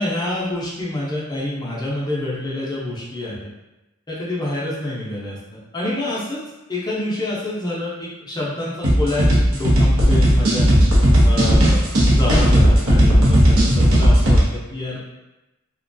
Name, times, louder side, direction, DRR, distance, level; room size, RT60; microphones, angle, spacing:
voice 1, 0.0-3.5 4.1-5.4 5.7-6.4 6.7-10.7 11.2-15.0, left 1 dB, 20° left, -6 dB, 0.5 m, -27 dB
sound 1, 8.8-14.4, equal, 85° right, 0.7 m, -15 dB
2.4 x 2.2 x 2.5 m, 1.0 s
head